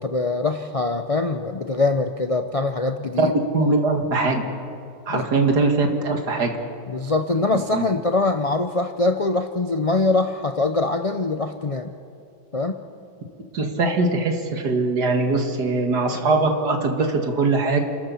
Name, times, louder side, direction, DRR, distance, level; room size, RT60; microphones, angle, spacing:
voice 1, 0.0-3.3 5.1-5.2 6.9-11.9 12.5-12.8, left 3 dB, 70° left, 7 dB, 0.3 m, -23 dB
voice 2, 3.5-4.4 5.1-6.5 7.5-7.9 13.5-17.8, right 3 dB, 75° right, 4 dB, 2.4 m, -21 dB
29.5 x 13.5 x 7.1 m, 2.6 s
omnidirectional pair, 1.8 m